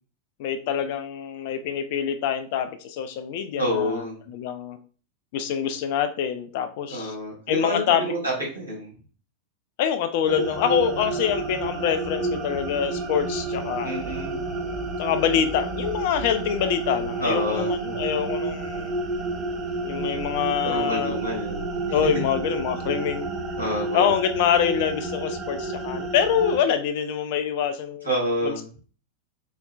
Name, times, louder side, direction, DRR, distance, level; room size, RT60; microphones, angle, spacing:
voice 1, 0.4-4.8 5.3-7.1 7.5-8.3 9.8-14.2 15.0-18.9 19.8-21.2 21.9-23.3 23.9-28.1 28.4-28.8, left 8 dB, 50° left, 9 dB, 0.4 m, -25 dB
voice 2, 3.5-4.2 6.9-8.9 13.8-14.4 17.2-17.8 20.6-22.2 23.6-24.1 28.0-28.7, equal, 80° right, -5 dB, 1.6 m, -28 dB
sound 1, 10.3-26.6, right 3 dB, 30° right, 0.6 m, -30 dB
4.0 x 2.1 x 2.3 m, 0.39 s
figure-of-eight pair, 90°, 0 cm